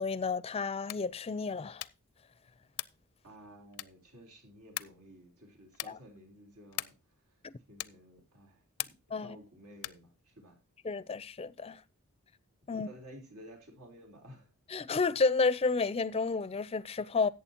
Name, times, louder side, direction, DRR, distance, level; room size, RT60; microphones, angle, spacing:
voice 1, 0.0-1.9 5.8-6.0 7.4-7.5 9.1-9.4 10.8-11.8 12.7-12.9 14.7-17.3, left 4 dB, 25° left, 0.4 m, -31 dB
sound 1, 0.8-1.2 1.7-2.1 2.7-3.1 3.7-4.1 4.7-5.1 5.7-6.1 6.7-7.1 7.8-8.1 8.8-9.2 9.8-10.1, left 15 dB, 85° left, 0.5 m, -41 dB
voice 2, 3.2-7.0 7.7-8.6 9.2-10.6 12.7-14.5, equal, 80° right, 3.7 m, -53 dB
14.0 x 8.6 x 2.8 m
head